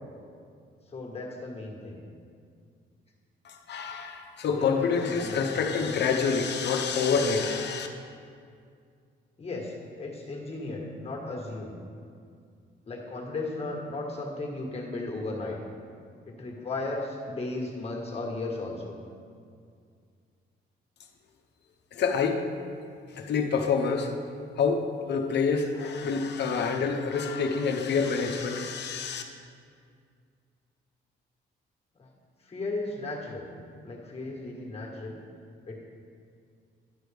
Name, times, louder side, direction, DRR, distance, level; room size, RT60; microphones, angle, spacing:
voice 1, 0.9-2.0 4.6-5.9 9.4-11.8 12.9-15.6 16.3-18.9 31.9-32.1 32.4-33.5 33.8-35.2 35.6-35.8, left 2 dB, 30° left, -1 dB, 1.6 m, -35 dB
voice 2, 3.4-7.9 21.9-22.5 23.1-24.1 24.6-29.2, left 5 dB, 60° left, 4 dB, 0.9 m, -27 dB
11.0 x 6.2 x 3.5 m, 2.2 s
cardioid pair, 90°, 20 cm